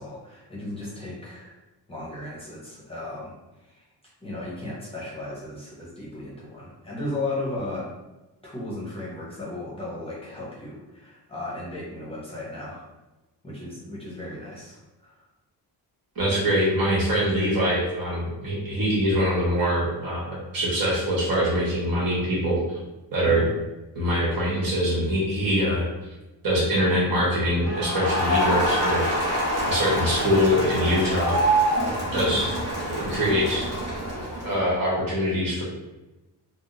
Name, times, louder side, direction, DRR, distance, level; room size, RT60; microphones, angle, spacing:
voice 1, 0.0-1.6 1.9-3.3 3.6-3.8 4.2-7.9 8.4-12.9 13.4-15.2 23.2-23.5 32.2-32.5, left 2 dB, 15° left, -7 dB, 0.8 m, -35 dB
voice 2, 16.1-22.8 23.1-23.5 23.9-25.8 26.4-29.0 29.7-31.4 32.1-32.5 32.9-33.7 34.4-35.6, equal, 55° right, -6 dB, 1.3 m, -23 dB
Crowd, 27.6-34.7, right 1 dB, 35° right, 1.0 m, -26 dB
3.6 x 2.0 x 2.5 m, 1.1 s
cardioid pair, 120°, 42 cm